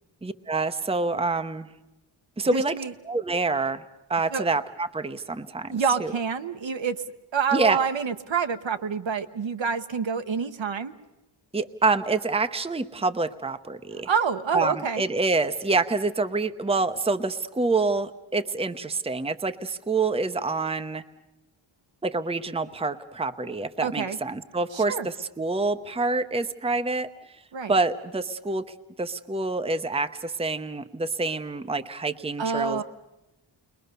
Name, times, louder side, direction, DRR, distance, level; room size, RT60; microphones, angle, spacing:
voice 1, 0.2-1.7 2.4-2.8 3.1-3.8 4.1-6.1 7.5-7.8 11.5-14.1 14.5-21.0 22.0-27.1 27.7-28.6 29.0-32.8, right 3 dB, 10° right, 9 dB, 0.8 m, -27 dB
voice 2, 2.5-2.9 4.3-4.5 5.7-7.0 7.3-10.9 14.1-15.0 23.8-24.2 24.7-25.1 27.5-27.7 32.4-32.8, right 6 dB, 65° right, 8 dB, 1.2 m, -27 dB
29.5 x 22.0 x 6.8 m, 0.96 s
wide cardioid pair, 95°, 49 cm